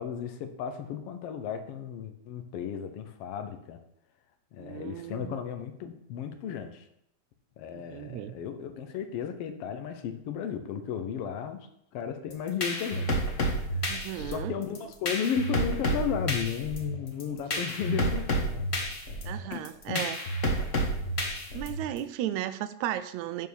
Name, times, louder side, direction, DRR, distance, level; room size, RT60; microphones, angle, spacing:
voice 1, 0.0-3.8 4.5-6.8 7.6-13.2 14.1-18.7 19.5-19.6 19.9-20.0, left 8 dB, 65° left, 8 dB, 1.6 m, -34 dB
voice 2, 4.6-5.4 7.7-8.4 13.8-14.5 17.5-17.6 19.3-20.2 21.5-23.5, right 12 dB, 80° right, 13 dB, 1.8 m, -35 dB
sound 1, 12.3-22.0, equal, 45° left, 1.0 m, -30 dB
9.3 x 4.4 x 7.0 m, 0.74 s
omnidirectional pair, 3.5 m